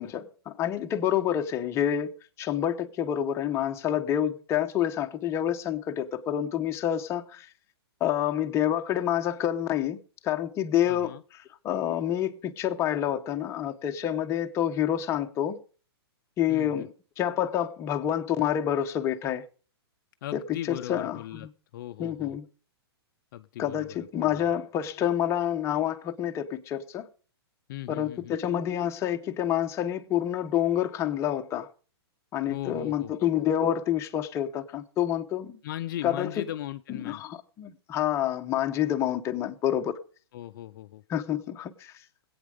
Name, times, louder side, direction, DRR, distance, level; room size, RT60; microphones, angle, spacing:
voice 1, 0.0-2.1 2.4-7.5 8.0-11.2 11.6-15.6 16.4-19.4 20.3-20.4 20.7-21.5 22.0-22.5 23.6-27.1 27.9-31.7 32.3-35.6 36.0-36.4 36.9-39.9 41.1-42.0, left 10 dB, 20° left, 0.9 m, -28 dB
voice 2, 10.9-11.2 16.5-16.9 20.2-21.5 21.7-22.4 23.3-24.5 27.7-28.3 32.5-33.1 35.6-37.2 40.3-41.0, left 13 dB, 50° left, 0.6 m, -38 dB
19.0 x 8.8 x 5.0 m
hypercardioid pair, 150°, 14 cm